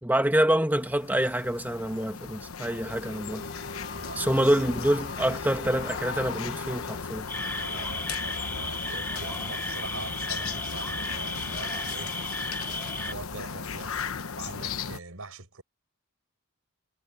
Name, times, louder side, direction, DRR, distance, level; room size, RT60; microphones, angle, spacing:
voice 1, 0.0-3.4 4.2-7.3, right 1 dB, 10° right, 1.6 m, -26 dB
sound 1, 0.7-15.0, left 5 dB, 75° left, 1.0 m, -36 dB
sound 2, 2.6-7.5, left 2 dB, 45° left, 3.8 m, -44 dB
voice 2, 3.9-4.6 7.6-12.2 12.9-14.0 14.4-15.6, right 3 dB, 75° right, 5.0 m, -42 dB
sound 3, 7.3-13.1, left 2 dB, 10° left, 2.2 m, -34 dB
head